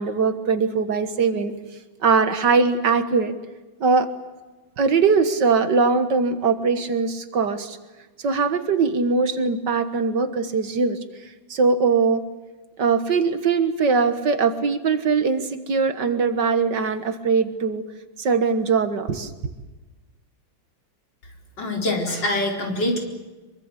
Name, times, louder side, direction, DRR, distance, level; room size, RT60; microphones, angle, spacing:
voice 1, 0.0-1.5 2.0-3.3 3.8-4.1 4.8-7.8 8.2-11.0 11.5-12.2 12.8-17.8 18.2-19.3, right 5 dB, 60° right, 10 dB, 2.0 m, -21 dB
voice 2, 21.6-23.0, left 1 dB, 60° left, 2 dB, 5.0 m, -24 dB
24.5 x 24.0 x 8.2 m, 1.2 s
omnidirectional pair, 2.2 m